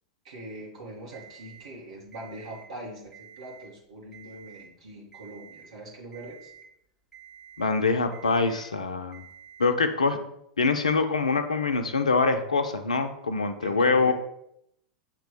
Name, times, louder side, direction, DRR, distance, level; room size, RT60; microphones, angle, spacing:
voice 1, 0.2-6.5 13.6-14.1, right 1 dB, 65° right, -3 dB, 1.9 m, -42 dB
Alarm, 1.1-1.7 2.1-2.7 3.1-3.7 4.1-4.7 5.1-5.7 6.1-6.7 7.1-7.7 8.1-8.7 9.1-9.7, right 9 dB, 5° right, 1.4 m, -50 dB
voice 2, 7.6-9.3 9.6-10.2 10.6-14.1, left 4 dB, 75° left, 8 dB, 0.6 m, -24 dB
7.2 x 3.0 x 5.1 m, 0.75 s
figure-of-eight pair, 90°, 4 cm